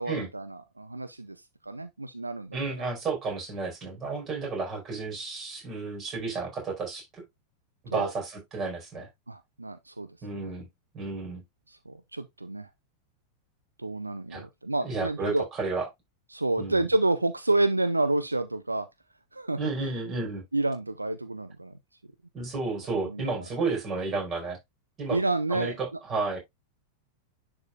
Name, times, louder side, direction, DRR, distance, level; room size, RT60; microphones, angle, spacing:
voice 1, 0.0-1.4 1.6-2.6 7.9-8.1 9.3-10.5 11.7-12.7 13.8-15.5 16.3-18.9 19.3-19.6 20.5-21.7 23.0-23.3 25.1-25.8, right 2 dB, 85° right, 0.5 m, -29 dB
voice 2, 2.5-7.2 7.8-9.1 10.2-10.7 10.9-11.4 14.3-14.5 14.8-15.9 16.6-16.9 19.6-20.4 22.3-24.6 25.0-25.2 25.5-26.4, right 3 dB, 25° right, 4.8 m, -32 dB
10.5 x 4.9 x 2.4 m
figure-of-eight pair, 90°, 0 cm